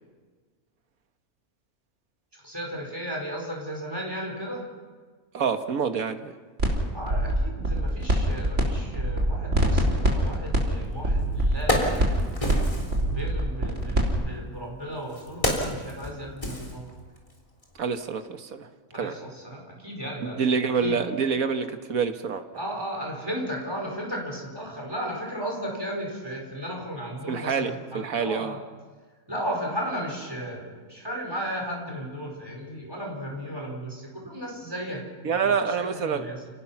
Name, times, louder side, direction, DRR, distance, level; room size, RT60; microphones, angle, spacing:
voice 1, 2.3-4.7 6.9-12.1 13.0-16.9 18.9-20.5 20.8-21.0 22.6-28.6 29.3-36.5, equal, 15° right, -1 dB, 5.2 m, -35 dB
voice 2, 5.3-6.3 17.8-18.7 18.9-19.1 20.2-22.4 27.3-28.6 35.2-36.3, right 6 dB, 75° right, 8 dB, 1.7 m, -27 dB
sound 1, 6.6-6.7 7.0-8.6 8.9-14.1, right 1 dB, 55° right, 3.7 m, -24 dB
Wood, 10.8-10.9 11.4-13.0 14.0-17.3 17.6-17.8, equal, 20° left, 3.5 m, -29 dB
29.5 x 18.0 x 5.9 m, 1.4 s
omnidirectional pair, 1.5 m